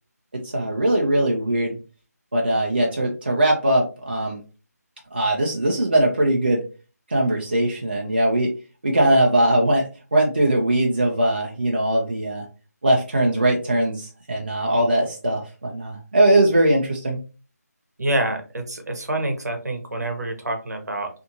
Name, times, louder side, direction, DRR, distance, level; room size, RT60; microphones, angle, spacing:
voice 1, 0.3-1.7 2.3-4.4 5.1-6.6 7.1-8.5 8.8-12.5 12.8-17.2, right 1 dB, 35° right, -1 dB, 0.4 m, -20 dB
voice 2, 18.0-21.1, right 1 dB, 70° right, 4 dB, 0.9 m, -27 dB
2.6 x 2.4 x 2.7 m, 0.35 s
figure-of-eight pair, 175°, 9 cm